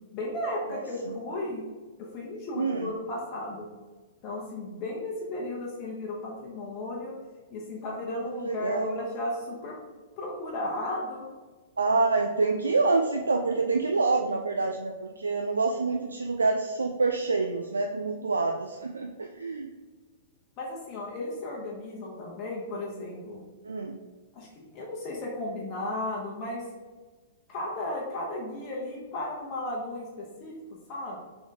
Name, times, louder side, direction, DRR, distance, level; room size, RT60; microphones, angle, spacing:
voice 1, 0.1-1.6 2.0-3.7 4.2-7.1 7.5-9.8 10.2-11.2 14.6-14.7 20.6-23.4 24.3-26.6 27.5-30.5 30.9-31.2, left 1 dB, 40° left, -3 dB, 1.0 m, -35 dB
voice 2, 0.7-1.1 2.5-2.9 8.4-9.0 11.8-19.7 23.6-24.0, right 3 dB, 80° right, 3 dB, 0.3 m, -27 dB
3.8 x 3.8 x 3.7 m, 1.3 s
figure-of-eight pair, 105°, 0 cm